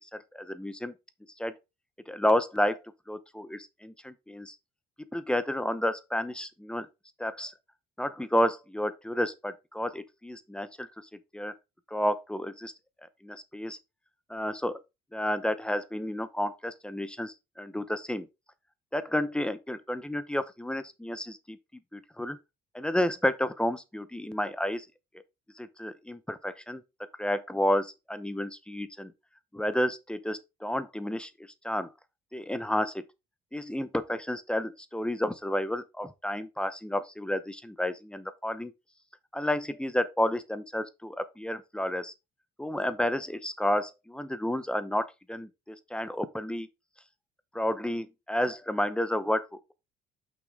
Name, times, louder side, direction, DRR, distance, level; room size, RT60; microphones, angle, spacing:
voice 1, 0.1-0.9 1.4-1.5 2.1-2.8 3.1-4.5 5.1-6.9 7.2-7.5 8.0-10.9 11.3-11.5 11.9-12.7 13.2-13.8 14.3-14.8 15.1-18.3 18.9-21.6 21.9-22.4 22.7-24.9 25.6-26.8 27.2-29.1 29.5-31.3 31.6-31.9 32.3-33.0 33.5-38.7 39.3-42.1 42.6-46.7 47.5-49.7, left 1 dB, 5° left, 0.7 m, -31 dB
6.0 x 6.0 x 3.4 m
cardioid pair, 110°, 17 cm